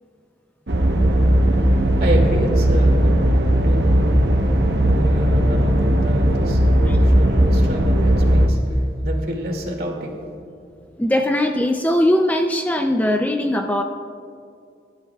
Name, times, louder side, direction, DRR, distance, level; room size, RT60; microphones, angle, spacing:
sound 1, 0.7-8.5, right 1 dB, 85° right, 1.1 m, -17 dB
voice 1, 2.0-3.1 3.6-4.1 4.6-10.3, equal, 55° right, 0 dB, 2.4 m, -28 dB
voice 2, 11.0-13.8, left 1 dB, 10° left, 4 dB, 0.5 m, -20 dB
24.0 x 12.0 x 2.4 m, 2.4 s
head